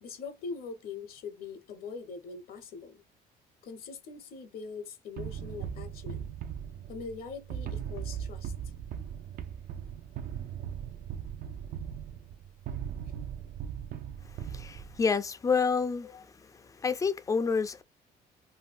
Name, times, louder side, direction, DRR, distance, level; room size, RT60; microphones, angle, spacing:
voice 1, 0.0-3.0 3.6-6.2 6.9-8.5 16.0-16.2, left 5 dB, 60° left, 0.7 m, -42 dB
sound 1, 5.2-15.1, right 8 dB, 60° right, 0.5 m, -39 dB
voice 2, 14.5-16.1 16.8-17.8, left 5 dB, 20° left, 0.4 m, -28 dB
2.6 x 2.2 x 3.4 m
cardioid pair, 110°, 17 cm